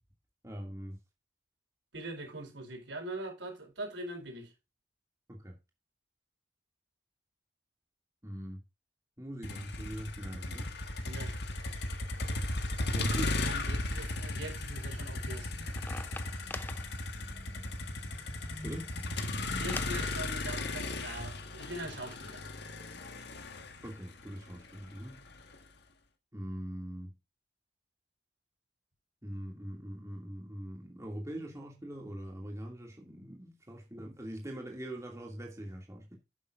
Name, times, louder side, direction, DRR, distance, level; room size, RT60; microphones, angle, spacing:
voice 1, 0.4-1.0 5.3-5.5 8.2-8.6 9.2-10.8 12.8-13.3 18.6-18.9 23.8-25.2 26.3-27.1 29.2-36.2, right 1 dB, 15° right, 2.5 m, -42 dB
voice 2, 1.9-4.5 11.0-11.3 13.1-15.5 19.6-22.5, right 1 dB, 80° right, 4.7 m, -42 dB
Motor vehicle (road), 9.4-25.5, left 2 dB, 65° left, 1.6 m, -36 dB
sound 1, 14.9-20.1, left 2 dB, 10° left, 0.6 m, -45 dB
11.0 x 9.5 x 2.6 m
head